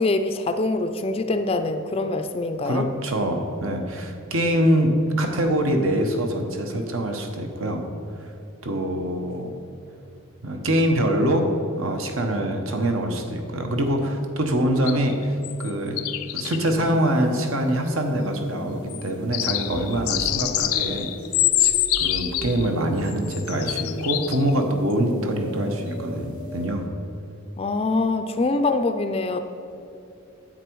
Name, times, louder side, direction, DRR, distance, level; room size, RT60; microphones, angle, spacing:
voice 1, 0.0-2.9 27.6-29.4, left 2 dB, 25° left, 8 dB, 0.4 m, -24 dB
voice 2, 2.6-7.8 8.2-8.3 8.6-9.5 10.4-16.0 16.3-21.1 21.6-21.7 22.0-26.9, right 1 dB, 70° right, 4 dB, 1.1 m, -24 dB
sound 1, 14.8-15.7 16.0-16.7 18.9-19.1 19.3-22.8 23.1-24.6 24.9-25.0, left 13 dB, 85° left, 0.5 m, -25 dB
sound 2, 16.7-26.7, equal, 40° right, 2.0 m, -37 dB
10.0 x 8.1 x 4.6 m, 2.7 s
head